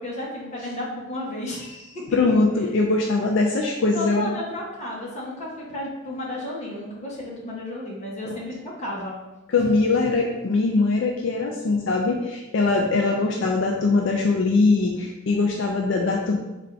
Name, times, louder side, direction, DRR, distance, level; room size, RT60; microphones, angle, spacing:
voice 1, 0.0-2.0 3.9-9.2 9.6-9.7, left 1 dB, 35° left, -4 dB, 1.0 m, -33 dB
voice 2, 2.1-4.3 8.2-8.4 9.5-16.4, left 3 dB, 65° left, 0 dB, 0.4 m, -22 dB
3.5 x 2.5 x 4.4 m, 1.1 s
head